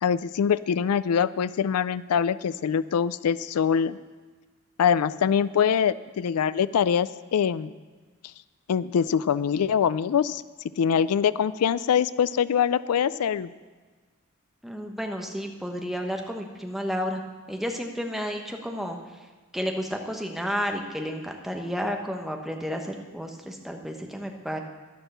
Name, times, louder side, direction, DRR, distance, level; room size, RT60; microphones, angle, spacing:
voice 1, 0.0-4.0 4.8-7.7 8.7-10.4 10.8-13.5, left 7 dB, 90° left, 17 dB, 0.4 m, -24 dB
voice 2, 14.6-17.2 17.5-19.0 19.5-24.6, equal, ahead, 2 dB, 1.1 m, -31 dB
11.5 x 11.0 x 6.7 m, 1.4 s
head